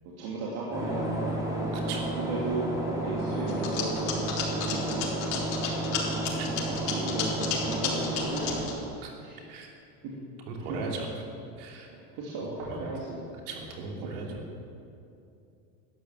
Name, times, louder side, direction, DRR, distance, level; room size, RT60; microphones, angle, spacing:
voice 1, 0.0-1.7 2.1-5.5 6.6-8.8 9.2-9.6 10.0-10.1 10.6-10.8 11.9-13.2 14.0-14.4, right 2 dB, 55° right, -5 dB, 2.9 m, -36 dB
sound 1, 0.7-8.7, right 1 dB, 10° right, 3.2 m, -32 dB
voice 2, 1.9-2.2 6.4-6.5 9.0-9.1 9.5-9.7 10.5-11.1 11.6-11.9 12.7-12.9 13.5-14.4, right 4 dB, 75° right, 0 dB, 3.1 m, -37 dB
sound 2, 3.5-8.7, left 7 dB, 65° left, 3.5 m, -32 dB
12.5 x 10.5 x 7.7 m, 2.6 s
supercardioid pair, 125°, 45 cm